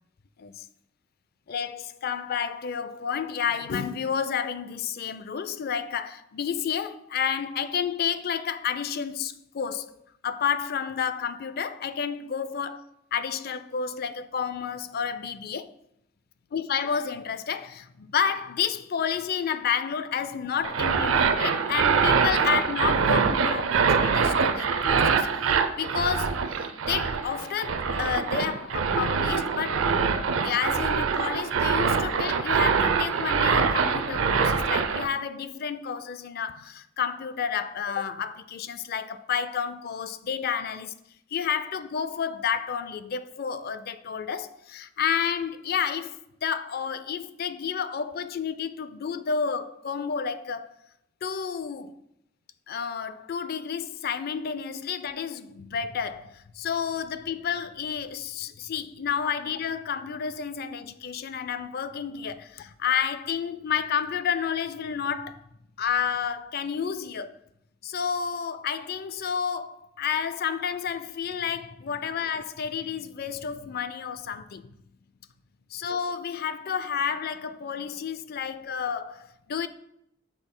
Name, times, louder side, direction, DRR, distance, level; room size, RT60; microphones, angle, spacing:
voice 1, 1.5-9.9 10.2-12.8 13.1-15.7 16.5-29.9 30.4-40.9 41.3-50.8 51.2-52.0 52.7-65.4 65.8-67.3 67.8-74.7 75.7-79.7, left 7 dB, 50° left, 0.4 m, -30 dB
sound 1, 20.6-35.1, right 5 dB, 75° right, 0.5 m, -24 dB
8.7 x 6.0 x 2.2 m
head